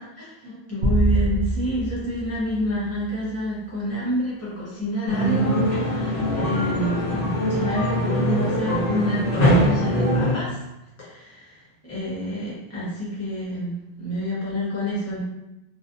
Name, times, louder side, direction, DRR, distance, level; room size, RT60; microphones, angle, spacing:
voice 1, 0.2-10.6 11.0-15.2, left 1 dB, 15° left, -8 dB, 0.8 m, -28 dB
sound 1, 0.8-3.3, right 2 dB, 55° right, 0.5 m, -25 dB
sound 2, 5.1-10.3, equal, 45° left, 0.7 m, -22 dB
2.6 x 2.1 x 2.5 m, 0.95 s
omnidirectional pair, 1.1 m